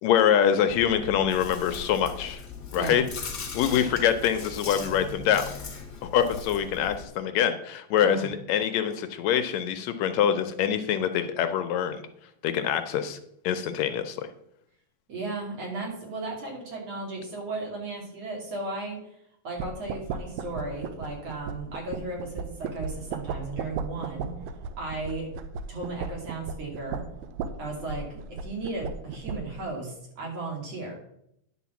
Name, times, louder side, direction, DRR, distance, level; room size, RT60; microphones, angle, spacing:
voice 1, 0.0-2.4 2.7-3.0 3.5-5.4 6.1-12.0 12.4-13.2 13.4-14.3, left 9 dB, 75° left, 9 dB, 1.8 m, -25 dB
Chewing mastication, 0.7-7.0, left 5 dB, 50° left, 1.3 m, -39 dB
voice 2, 8.0-8.3 15.1-19.0 19.4-24.3 24.8-25.3 25.7-27.0 27.6-31.0, right 2 dB, 55° right, -1 dB, 3.5 m, -35 dB
sound 1, 19.6-29.6, right 5 dB, 80° right, 1.9 m, -36 dB
10.0 x 4.4 x 7.0 m, 0.75 s
omnidirectional pair, 3.5 m